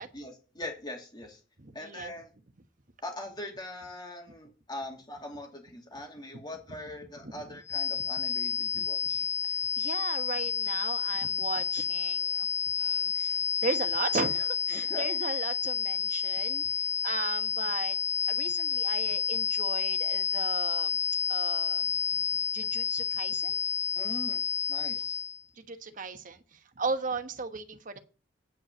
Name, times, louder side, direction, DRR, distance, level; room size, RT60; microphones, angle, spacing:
voice 1, 0.1-1.4 1.7-2.3 3.0-9.3 14.7-15.0 23.9-24.4 24.7-25.2, left 1 dB, 25° left, 2.7 m, -42 dB
voice 2, 1.6-2.1 7.2-7.6 7.9-8.1 8.7-9.1 9.4-12.5 12.8-18.0 18.3-21.0 21.3-21.9 22.5-23.6 24.9-25.0 25.6-28.0, right 4 dB, 45° right, 1.1 m, -37 dB
sound 1, 7.7-25.4, left 7 dB, 40° left, 0.9 m, -30 dB
9.3 x 5.4 x 7.3 m
head